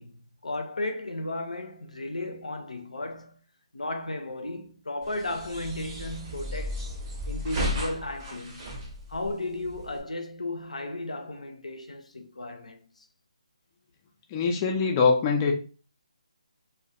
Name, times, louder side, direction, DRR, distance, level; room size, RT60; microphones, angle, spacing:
voice 1, 0.0-3.4 3.7-6.8 7.3-8.7 9.1-13.1, left 2 dB, 80° left, 0.5 m, -35 dB
sound 1, 5.0-10.0, equal, 30° right, 0.6 m, -34 dB
voice 2, 14.3-15.5, left 5 dB, 20° left, 0.3 m, -23 dB
2.2 x 2.1 x 2.7 m
figure-of-eight pair, 150°, 4 cm